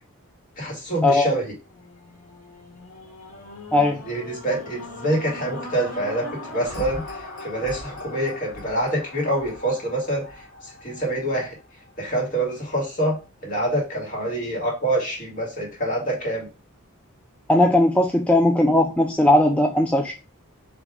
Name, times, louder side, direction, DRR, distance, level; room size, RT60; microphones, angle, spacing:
voice 1, 0.6-1.5 4.0-11.5 12.0-16.5, right 1 dB, 40° left, -2 dB, 2.0 m, -26 dB
sound 1, 1.6-11.9 12.5-12.6, left 2 dB, 65° left, 1.5 m, -39 dB
voice 2, 17.5-20.1, left 1 dB, 5° left, 2 dB, 0.3 m, -18 dB
3.6 x 3.1 x 4.8 m, 0.31 s
head